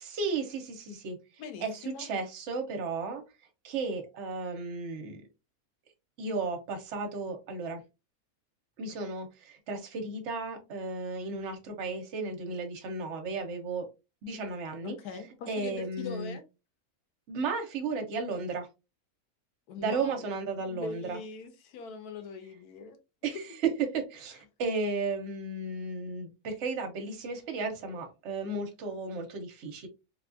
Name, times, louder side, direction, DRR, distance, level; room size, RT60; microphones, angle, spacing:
voice 1, 0.0-1.2 1.6-3.2 3.6-5.2 6.2-7.8 8.8-13.9 14.2-15.0 15.5-16.4 17.3-18.7 19.8-21.2 23.2-29.9, right 4 dB, 60° right, 5 dB, 1.0 m, -34 dB
voice 2, 1.4-2.1 14.8-16.4 19.7-20.3 20.6-23.0, left 5 dB, 90° left, 9 dB, 1.2 m, -42 dB
3.5 x 2.3 x 2.5 m, 0.27 s
omnidirectional pair, 1.6 m